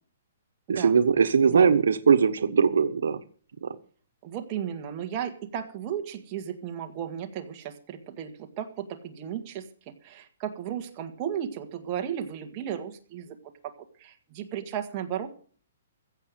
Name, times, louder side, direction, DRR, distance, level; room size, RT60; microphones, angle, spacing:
voice 1, 0.7-3.2 3.6-3.8, right 6 dB, 80° right, 9 dB, 1.2 m, -21 dB
voice 2, 4.2-8.3 8.6-13.4 13.6-13.7 14.0-15.3, right 9 dB, 25° right, 4 dB, 1.8 m, -34 dB
16.0 x 6.8 x 7.6 m, 0.43 s
hypercardioid pair, 165°, 0 cm